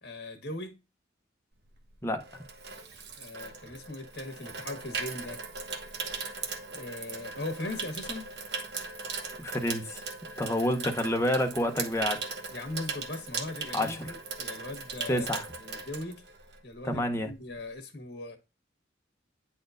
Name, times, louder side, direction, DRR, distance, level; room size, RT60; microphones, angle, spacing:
voice 1, 0.0-0.8 3.2-5.4 6.7-8.2 12.5-15.3 15.6-16.2 16.6-18.4, left 2 dB, 60° left, 1.6 m, -39 dB
Water tap faucet / Sink (filling or washing), 1.7-16.7 17.0-17.3, right 4 dB, 60° right, 1.0 m, -39 dB
voice 2, 9.4-10.0 10.4-12.2 13.7-14.1 15.1-15.5 16.8-17.3, left 1 dB, 15° left, 0.8 m, -28 dB
9.1 x 4.3 x 2.5 m
head